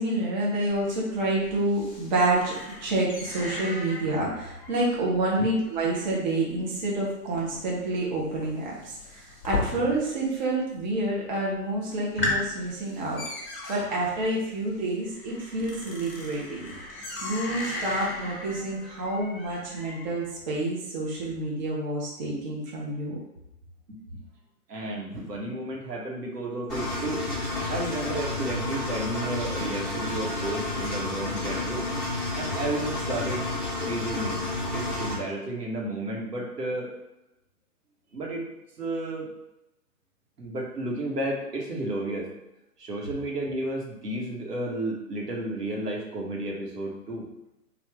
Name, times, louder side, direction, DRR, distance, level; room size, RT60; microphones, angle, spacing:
voice 1, 0.0-2.5 2.8-23.2, right 2 dB, 30° right, -4 dB, 0.6 m, -28 dB
sound 1, 0.7-10.3 10.5-11.1 11.5-11.6 11.9-20.3, left 2 dB, 25° left, 0.9 m, -37 dB
voice 2, 24.7-27.2 27.7-31.9 32.3-33.5 33.9-34.4 34.7-36.9 38.1-38.4 38.8-39.3 40.4-42.3 42.8-47.2, right 1 dB, 80° right, -2 dB, 1.2 m, -32 dB
Engine, 26.7-35.1, left 2 dB, ahead, 0.8 m, -30 dB
3.4 x 2.4 x 3.3 m, 0.90 s
figure-of-eight pair, 130°, 47 cm